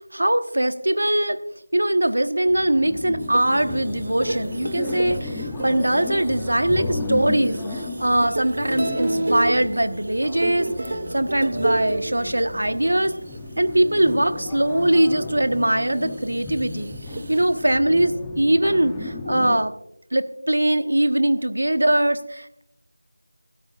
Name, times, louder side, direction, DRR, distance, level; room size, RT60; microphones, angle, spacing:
voice 1, 0.1-1.4 1.7-13.2 13.6-16.9 17.3-19.7 20.1-22.6, right 1 dB, 85° right, 10 dB, 1.2 m, -21 dB
sound 1, 2.5-19.6, left 2 dB, 5° left, 0.8 m, -33 dB
sound 2, 3.2-14.5 15.0-15.1 15.5-17.7, right 2 dB, 45° right, 0.6 m, -31 dB
24.5 x 13.0 x 2.4 m, 0.80 s
figure-of-eight pair, 175°, 0 cm